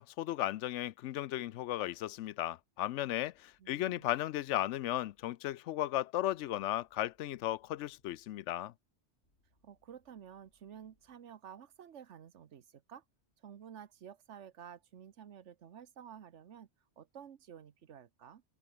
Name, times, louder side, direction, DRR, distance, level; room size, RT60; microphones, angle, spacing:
voice 1, 0.0-8.7, left 14 dB, 90° left, 0.9 m, -35 dB
voice 2, 3.6-4.1 9.6-13.0 13.4-16.7 17.0-18.4, right 8 dB, 80° right, 1.3 m, -52 dB
sound 1, 9.2-11.2, left 1 dB, 70° left, 6.9 m, -78 dB
omnidirectional pair, 1.2 m